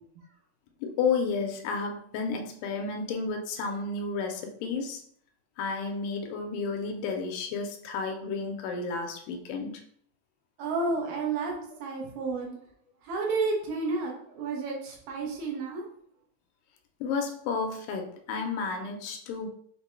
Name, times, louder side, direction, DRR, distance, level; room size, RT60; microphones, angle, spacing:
voice 1, 0.8-5.0 5.6-9.8 17.0-19.5, left 4 dB, 85° left, 4 dB, 2.3 m, -32 dB
voice 2, 10.6-12.6 13.0-15.8, right 3 dB, 80° right, -1 dB, 2.5 m, -31 dB
6.0 x 2.2 x 3.1 m, 0.62 s
omnidirectional pair, 3.8 m